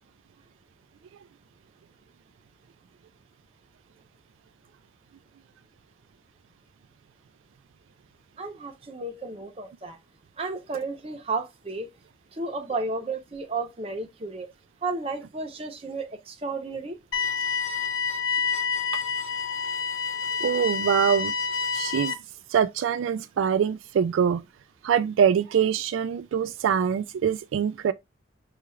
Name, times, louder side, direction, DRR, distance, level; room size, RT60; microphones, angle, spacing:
voice 1, 8.4-10.0 10.4-11.9 12.3-14.5 14.8-17.0, right 3 dB, 30° right, 0.7 m, -33 dB
sound 1, 17.1-22.1, left 5 dB, 80° left, 0.8 m, -28 dB
voice 2, 20.4-21.3 21.7-22.2 22.5-24.4 24.8-27.9, right 8 dB, 85° right, 0.3 m, -24 dB
5.6 x 2.4 x 3.1 m
head